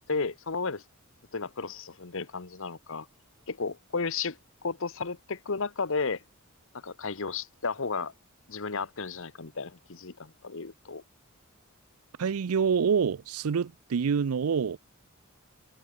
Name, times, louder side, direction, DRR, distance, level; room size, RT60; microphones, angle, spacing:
voice 1, 0.1-0.8 1.3-3.1 3.5-6.2 6.7-8.1 8.5-11.0, left 4 dB, 65° left, 1.2 m, -33 dB
voice 2, 12.2-14.8, right 6 dB, 85° right, 0.5 m, -26 dB
head